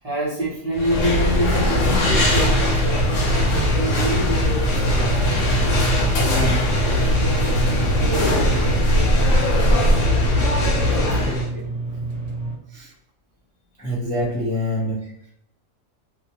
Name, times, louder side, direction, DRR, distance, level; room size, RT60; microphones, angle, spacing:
voice 1, 0.0-5.2 6.1-6.6 6.8-10.3 10.8-11.6 11.9-12.0, equal, 35° right, -6 dB, 0.6 m, -29 dB
sound 1, 0.7-11.5, left 1 dB, 75° left, 1.1 m, -19 dB
sound 2, 2.1-12.6, right 3 dB, 65° right, 0.9 m, -30 dB
voice 2, 6.3-6.6 12.7-12.9 13.8-15.0, equal, 15° left, -7 dB, 0.3 m, -25 dB
2.5 x 2.1 x 2.8 m, 0.76 s
omnidirectional pair, 1.3 m